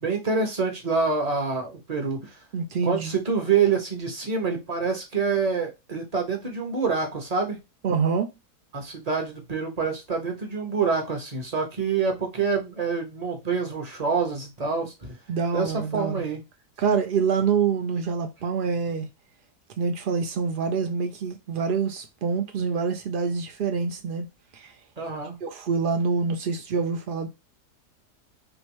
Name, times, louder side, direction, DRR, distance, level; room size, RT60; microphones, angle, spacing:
voice 1, 0.0-2.4 2.8-7.6 8.7-15.2 15.5-16.4 25.0-25.4, right 5 dB, 30° right, 1.0 m, -26 dB
voice 2, 2.5-3.1 7.8-8.3 15.3-16.2 16.8-19.1 19.8-24.3 24.5-24.7 25.4-27.3, right 5 dB, 90° right, 0.4 m, -26 dB
3.4 x 3.0 x 3.0 m
omnidirectional pair, 1.7 m